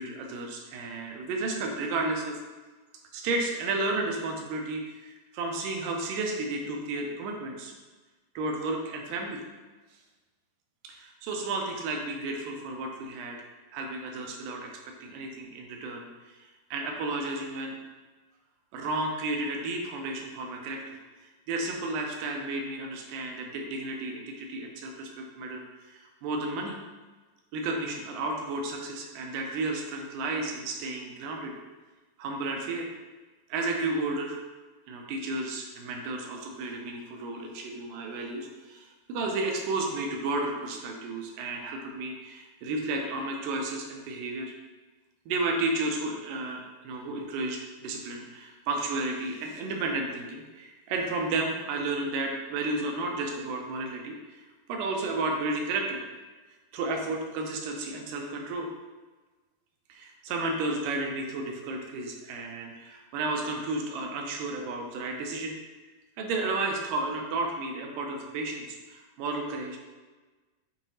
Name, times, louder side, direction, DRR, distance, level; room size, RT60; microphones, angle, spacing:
voice 1, 0.0-2.4 3.1-7.7 8.4-9.4 10.8-13.4 13.7-17.8 18.7-25.6 25.9-26.8 27.5-31.6 32.2-32.9 33.5-34.4 34.9-44.5 45.3-54.4 54.7-56.1 56.7-58.7 59.9-65.6 66.2-69.8, right 2 dB, 80° right, 1 dB, 2.2 m, -32 dB
7.1 x 2.8 x 2.7 m, 1.3 s
omnidirectional pair, 3.9 m